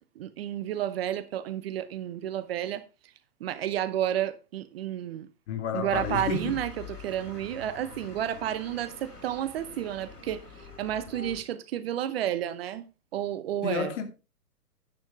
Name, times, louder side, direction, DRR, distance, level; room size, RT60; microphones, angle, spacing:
voice 1, 0.2-2.8 3.4-5.3 5.7-6.7 7.0-10.4 10.8-12.8 13.1-13.9, right 11 dB, 40° right, 0.9 m, -31 dB
voice 2, 5.5-6.6 13.6-14.0, left 5 dB, 50° left, 2.6 m, -31 dB
sound 1, 5.9-11.4, left 5 dB, 90° left, 6.0 m, -44 dB
10.5 x 8.9 x 3.3 m
hypercardioid pair, 130°, 46 cm